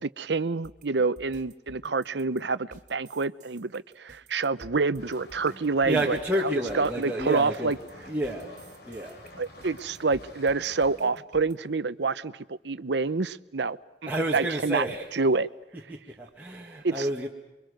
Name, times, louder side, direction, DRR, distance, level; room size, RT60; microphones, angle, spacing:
voice 1, 0.0-6.2 6.4-7.8 9.4-14.9 15.1-15.5 16.8-17.1, right 4 dB, 70° right, 16 dB, 0.8 m, -27 dB
sound 1, 0.6-11.5, right 1 dB, 45° right, 2.3 m, -52 dB
sound 2, 5.0-11.0, left 1 dB, 60° left, 4.4 m, -49 dB
voice 2, 5.8-7.7 8.1-8.6 8.8-9.2 14.1-15.1 15.9-17.3, right 1 dB, 10° right, -3 dB, 1.9 m, -30 dB
28.5 x 23.5 x 6.5 m, 1.0 s
head